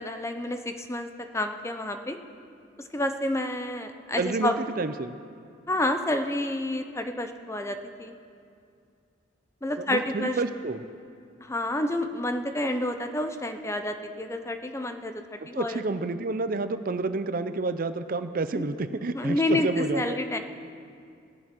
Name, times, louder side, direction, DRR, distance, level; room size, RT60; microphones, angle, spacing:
voice 1, 0.0-2.2 2.8-4.5 5.7-8.1 9.6-10.4 11.4-15.8 18.5-18.6 19.1-20.4, left 1 dB, 15° left, 7 dB, 0.7 m, -29 dB
voice 2, 4.1-5.1 9.8-10.8 15.5-20.2, right 3 dB, 50° right, 11 dB, 0.6 m, -29 dB
17.0 x 11.0 x 6.0 m, 2.5 s
head